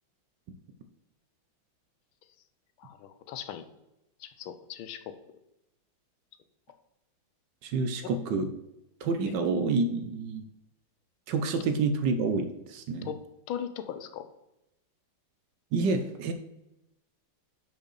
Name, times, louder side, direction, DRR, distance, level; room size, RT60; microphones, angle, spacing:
voice 1, 2.8-3.7 4.2-5.1 8.0-8.1 9.3-9.4 13.0-13.2 13.5-14.3, left 9 dB, 80° left, 10 dB, 1.5 m, -39 dB
voice 2, 7.6-8.5 9.0-10.5 11.3-13.1 15.7-16.3, right 4 dB, 70° right, 8 dB, 1.2 m, -28 dB
5.4 x 5.3 x 6.3 m, 0.90 s
omnidirectional pair, 2.2 m